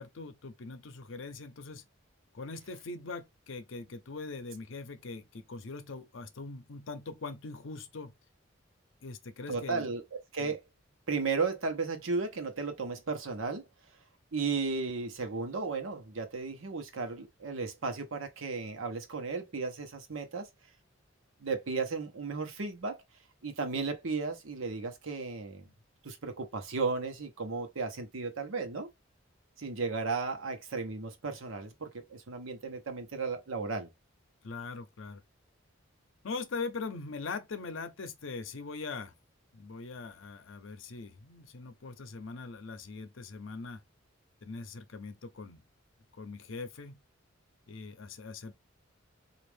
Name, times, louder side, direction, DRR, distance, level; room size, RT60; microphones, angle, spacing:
voice 1, 0.0-1.8 2.3-8.1 9.0-9.9 10.4-10.5 34.4-35.2 36.2-39.1 39.5-43.8 44.4-45.6 46.2-47.0 47.7-48.5, left 4 dB, 70° left, 0.6 m, -41 dB
voice 2, 9.5-10.0 10.3-10.6 11.1-13.6 14.3-20.5 21.4-23.0 23.4-25.7 26.0-28.9 29.6-33.9, right 4 dB, 85° right, 0.9 m, -34 dB
3.5 x 2.5 x 3.3 m
head